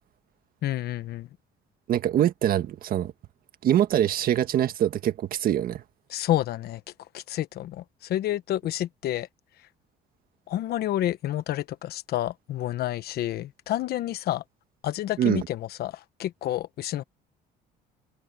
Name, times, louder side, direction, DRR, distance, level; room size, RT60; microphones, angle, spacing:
voice 1, 0.6-1.3 6.1-6.8 7.1-9.3 10.5-14.4 14.8-15.9 16.2-17.0, left 13 dB, 70° left, 1.1 m, -29 dB
voice 2, 1.9-3.1 3.6-5.8 15.2-15.5, right 11 dB, 60° right, 1.7 m, -24 dB
cardioid pair, 110°, 17 cm